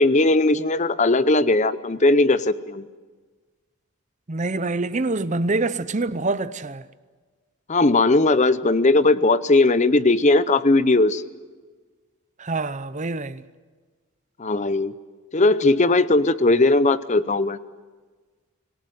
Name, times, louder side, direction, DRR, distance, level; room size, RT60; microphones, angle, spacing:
voice 1, 0.0-2.9 7.7-11.2 14.4-14.9 15.3-17.6, left 2 dB, 30° left, 0.7 m, -18 dB
voice 2, 4.3-6.8 12.4-13.4, right 3 dB, 35° right, 0.7 m, -25 dB
26.0 x 18.0 x 9.4 m
head